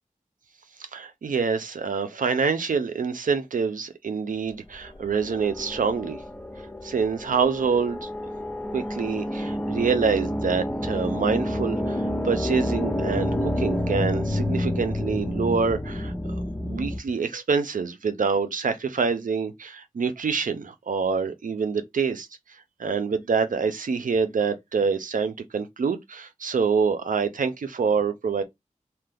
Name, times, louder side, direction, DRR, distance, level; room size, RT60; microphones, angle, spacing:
voice 1, 0.9-6.2 6.8-8.1 8.7-16.1 16.6-22.3 22.8-28.4, right 5 dB, 90° right, 0.5 m, -26 dB
sound 1, 5.1-17.0, left 1 dB, 15° left, 0.7 m, -29 dB
2.8 x 2.2 x 3.4 m
wide cardioid pair, 45°, 13 cm